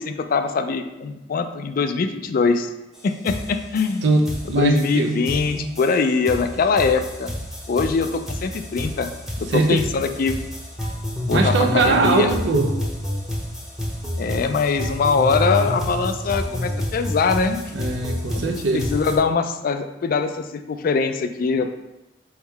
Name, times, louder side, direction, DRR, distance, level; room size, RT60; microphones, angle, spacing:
voice 1, 0.0-2.7 3.0-4.1 4.5-7.3 7.7-9.1 9.4-10.4 11.3-12.3 14.2-17.6 18.3-21.7, left 4 dB, 55° left, 8 dB, 0.3 m, -22 dB
sound 1, 2.9-3.0 3.3-19.2, left 1 dB, 5° right, 0.7 m, -29 dB
voice 2, 4.0-5.2 5.6-5.7 9.5-9.9 11.3-12.8 17.7-18.9, right 3 dB, 70° right, 4 dB, 0.6 m, -21 dB
3.5 x 3.1 x 4.6 m, 0.96 s
head